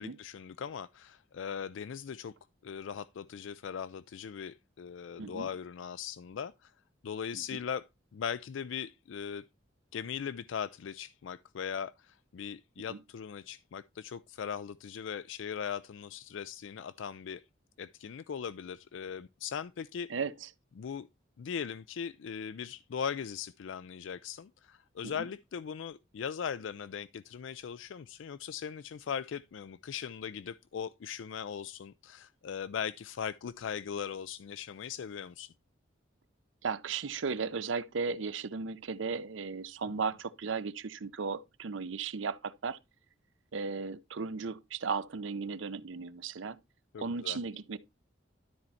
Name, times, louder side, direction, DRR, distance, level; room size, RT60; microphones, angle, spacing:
voice 1, 0.0-2.3 2.6-6.7 7.0-7.9 8.1-9.4 9.9-17.4 17.8-20.1 20.8-21.1 21.4-35.5 46.9-47.4, left 7 dB, 80° left, 0.4 m, -39 dB
voice 2, 5.2-5.5 7.3-7.6 12.9-13.0 20.1-20.5 25.0-25.3 36.6-42.8 43.5-46.6 47.0-47.8, right 5 dB, 80° right, 0.6 m, -36 dB
12.5 x 4.4 x 4.1 m
head